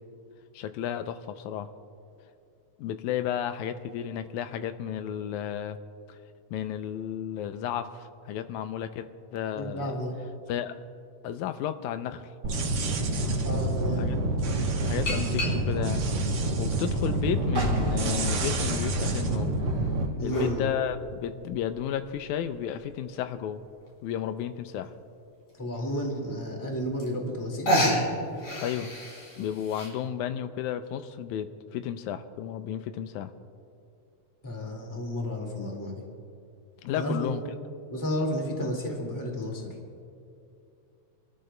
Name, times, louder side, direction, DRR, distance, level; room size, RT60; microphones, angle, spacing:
voice 1, 0.5-1.7 2.8-5.8 6.1-6.2 6.5-10.0 10.5-10.9 11.2-12.3 14.0-14.2 14.8-16.1 16.6-19.6 20.2-23.6 24.0-24.9 28.6-28.9 29.4-33.3 36.8-37.6, left 9 dB, 85° left, 10 dB, 2.0 m, -33 dB
voice 2, 9.5-10.1 13.4-14.1 20.2-20.7 25.6-28.0 34.4-36.0 37.0-37.3 37.9-39.8, equal, 10° left, 0 dB, 1.4 m, -32 dB
sound 1, 12.4-20.1, right 1 dB, 60° right, 1.3 m, -27 dB
sound 2, 13.3-13.4 15.1-16.0 16.7-17.6 18.3-18.4 19.6-20.6 22.3-22.4 22.9-23.0 23.1-23.2 23.6-23.9 24.9-25.0 25.5-25.6 26.7-26.8 27.0-27.4 27.7-29.9, equal, 65° left, 4.4 m, -30 dB
sound 3, 17.5-23.1, right 1 dB, 40° right, 1.0 m, -37 dB
29.0 x 13.5 x 2.2 m, 2.5 s
omnidirectional pair, 3.4 m